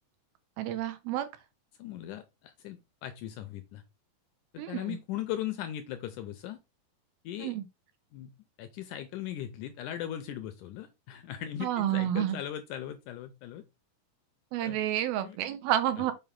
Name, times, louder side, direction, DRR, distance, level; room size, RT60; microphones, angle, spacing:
voice 1, 0.6-1.3 4.6-5.0 7.4-7.7 11.6-12.4 14.5-16.1, right 12 dB, 90° right, 2.8 m, -30 dB
voice 2, 1.8-3.8 4.7-6.6 7.2-7.5 8.1-8.3 8.6-13.6 14.6-14.8 15.2-15.4, left 12 dB, 80° left, 1.9 m, -38 dB
6.7 x 5.1 x 3.6 m
omnidirectional pair, 4.1 m